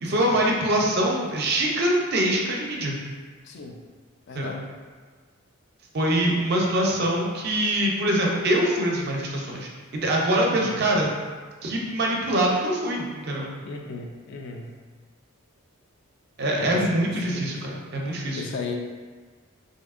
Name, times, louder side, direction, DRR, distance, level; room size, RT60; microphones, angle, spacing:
voice 1, 0.0-3.0 4.4-4.6 5.9-11.1 11.6-13.5 16.4-18.4, right 1 dB, 50° right, -1 dB, 0.5 m, -24 dB
voice 2, 3.4-3.8 4.3-4.6 10.4-10.7 13.6-14.7 16.6-17.5 18.3-18.8, left 3 dB, 55° left, 2 dB, 0.3 m, -35 dB
3.4 x 2.7 x 2.4 m, 1.5 s
head